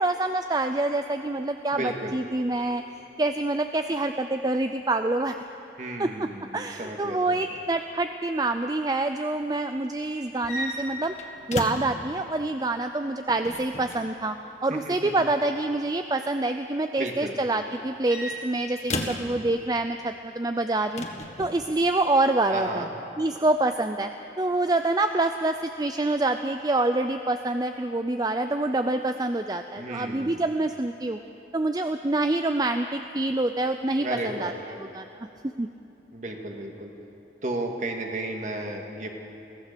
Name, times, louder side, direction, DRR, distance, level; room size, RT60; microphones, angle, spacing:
voice 1, 0.0-2.8 3.2-5.4 6.0-6.3 6.5-11.1 11.5-14.4 14.6-21.0 21.4-22.9 23.2-24.1 24.4-31.2 31.5-34.5 34.8-35.3 35.6-35.7, right 2 dB, 20° right, 7 dB, 0.4 m, -26 dB
voice 2, 1.7-2.2 5.8-7.4 14.7-15.1 17.0-17.3 22.5-22.9 29.8-30.4 34.0-34.6 36.1-36.9 37.4-39.1, right 2 dB, 45° right, 2 dB, 2.0 m, -33 dB
sound 1, 10.3-12.0 13.3-14.0 15.5-15.9 17.7-19.3 21.0-21.6, left 1 dB, 40° left, 1.6 m, -34 dB
23.0 x 17.0 x 6.8 m, 2.9 s
head